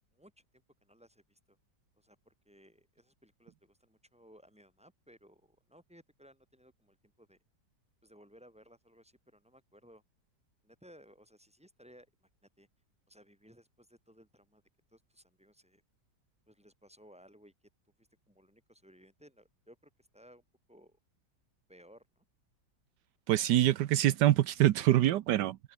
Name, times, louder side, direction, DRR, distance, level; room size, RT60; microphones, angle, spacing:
voice 1, 0.1-1.6 2.0-7.4 8.0-10.0 10.6-12.7 13.1-14.6 14.9-15.8 16.5-17.5 18.0-20.4 20.7-21.0 21.7-22.2, equal, 5° right, 7.6 m, -60 dB
voice 2, 23.3-25.7, right 13 dB, 80° right, 1.3 m, -25 dB
omnidirectional pair, 1.9 m